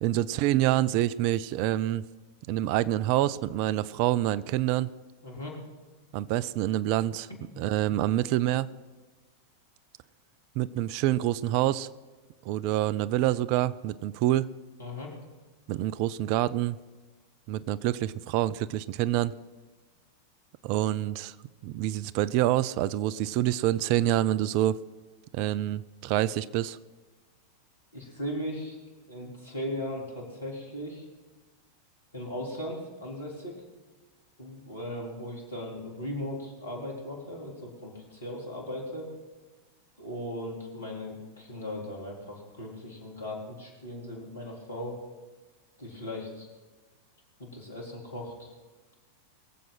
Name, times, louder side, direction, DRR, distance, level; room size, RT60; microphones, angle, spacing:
voice 1, 0.0-2.0 2.5-4.9 6.1-7.3 7.6-8.7 10.6-11.9 12.4-14.5 15.7-16.8 17.5-19.3 20.6-21.3 21.6-24.8 25.3-26.8, right 14 dB, 45° right, 19 dB, 0.4 m, -26 dB
voice 2, 5.2-5.6 14.8-15.1 27.9-28.8 29.0-31.1 32.1-33.6 34.4-39.1 40.0-45.0 45.8-46.5 47.4-48.5, left 1 dB, 75° left, -2 dB, 4.0 m, -38 dB
22.5 x 7.6 x 5.8 m, 1.3 s
figure-of-eight pair, 90°, 0 cm